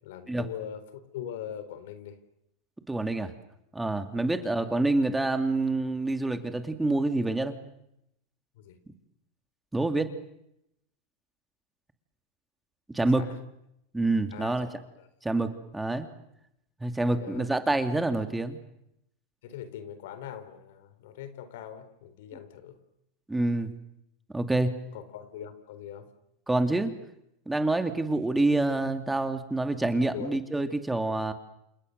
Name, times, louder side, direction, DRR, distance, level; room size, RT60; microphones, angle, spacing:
voice 1, 0.0-2.2 4.3-4.5 8.6-8.8 13.0-13.4 14.3-14.7 15.0-15.1 17.0-17.5 19.4-22.8 24.9-26.1 30.1-30.4, left 9 dB, 70° left, 12 dB, 4.0 m, -41 dB
voice 2, 2.9-3.3 3.7-7.6 9.7-10.1 12.9-13.2 13.9-14.7 15.2-16.1 16.8-18.6 23.3-23.7 24.3-24.7 26.5-26.9 27.5-31.3, right 2 dB, 10° right, 7 dB, 2.5 m, -27 dB
29.5 x 27.5 x 6.7 m, 0.81 s
hypercardioid pair, 110°, 0 cm